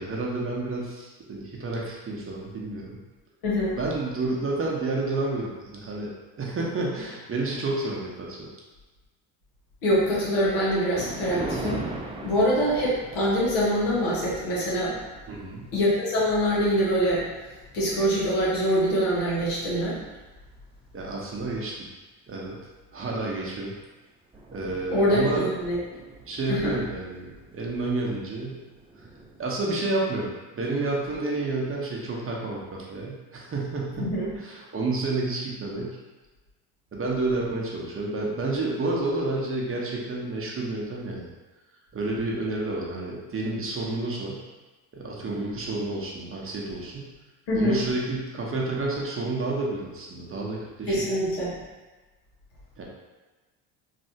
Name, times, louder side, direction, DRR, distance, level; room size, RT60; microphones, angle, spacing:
voice 1, 0.0-3.0 3.8-8.5 15.3-15.6 20.9-21.9 22.3-22.6 22.9-23.7 24.5-25.5 26.3-28.6 29.0-29.1 29.4-36.0 36.9-41.3 41.9-44.5 44.9-47.1 47.5-51.0 52.8-52.9, right 2 dB, 30° right, -3 dB, 0.8 m, -30 dB
voice 2, 3.4-3.8 9.8-11.8 12.2-15.0 15.7-17.3 17.7-20.0 24.9-25.8 26.5-26.8 34.0-34.3 47.5-47.8 50.9-51.6, equal, 80° left, -7 dB, 1.3 m, -24 dB
Thunder, 10.6-19.1 19.6-19.9 20.6-20.7 21.0-21.1 23.3-23.5 23.8-23.9 24.1-30.1, right 2 dB, 15° right, 0.4 m, -41 dB
3.2 x 2.6 x 2.7 m, 1.2 s
supercardioid pair, 70°, 41 cm